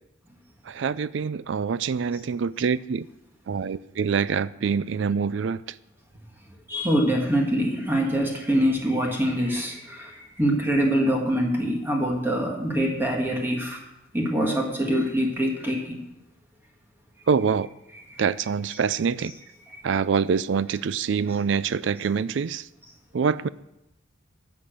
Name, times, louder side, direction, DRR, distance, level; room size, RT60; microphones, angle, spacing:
voice 1, 0.7-3.1 3.5-5.6 17.3-17.7 18.2-19.3 19.8-22.6 23.1-23.5, right 6 dB, 65° right, 0.4 m, -25 dB
voice 2, 6.7-10.1 10.4-13.8 14.1-16.0, equal, 10° right, 1.6 m, -24 dB
11.5 x 7.0 x 6.3 m
head